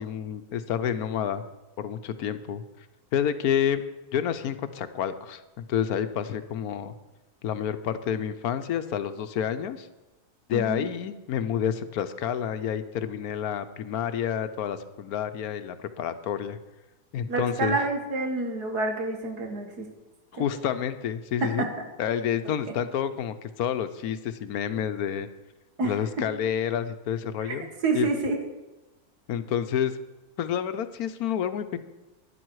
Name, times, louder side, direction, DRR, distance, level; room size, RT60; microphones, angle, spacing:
voice 1, 0.0-1.4 1.8-2.6 3.1-3.8 4.1-6.9 7.4-9.9 10.5-16.6 17.1-17.8 20.3-21.7 22.0-25.3 25.8-27.7 27.9-28.1 29.3-29.9 30.4-31.8, left 9 dB, 75° left, 11 dB, 1.2 m, -29 dB
voice 2, 10.5-10.9 17.3-19.9 20.3-20.5 21.4-21.7 25.8-26.0 27.4-27.6 27.8-28.4, right 3 dB, 80° right, 4 dB, 2.2 m, -28 dB
12.0 x 10.5 x 4.7 m, 1.1 s
omnidirectional pair, 1.6 m